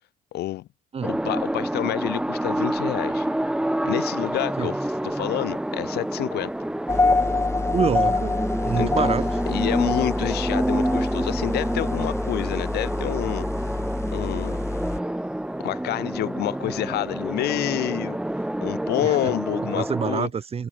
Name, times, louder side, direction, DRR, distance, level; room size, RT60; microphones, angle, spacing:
voice 1, 0.3-0.7 1.0-3.3 3.8-6.5 8.8-9.1 9.5-13.5 14.1-14.6 15.6-18.2 18.6-20.3, left 15 dB, 75° left, 3.2 m, -28 dB
sound 1, 1.0-20.2, right 1 dB, 5° right, 1.5 m, -28 dB
sound 2, 6.9-15.0, left 3 dB, 15° left, 1.7 m, -26 dB
voice 2, 7.7-9.3 19.0-19.1 19.7-20.7, right 6 dB, 35° right, 4.5 m, -26 dB
cardioid pair, 110°, 17 cm